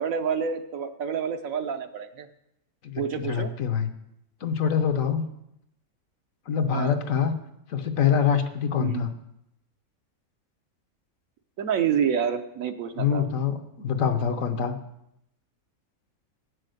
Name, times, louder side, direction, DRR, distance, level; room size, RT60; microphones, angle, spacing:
voice 1, 0.0-2.3 3.0-3.5 6.7-7.0 8.8-9.1 11.6-13.2, right 7 dB, 70° right, 8 dB, 1.1 m, -28 dB
voice 2, 2.8-3.9 4.4-5.3 6.5-7.3 7.7-9.1 13.0-14.7, left 7 dB, 65° left, 7 dB, 1.2 m, -25 dB
8.5 x 6.5 x 7.7 m, 0.81 s
omnidirectional pair, 1.5 m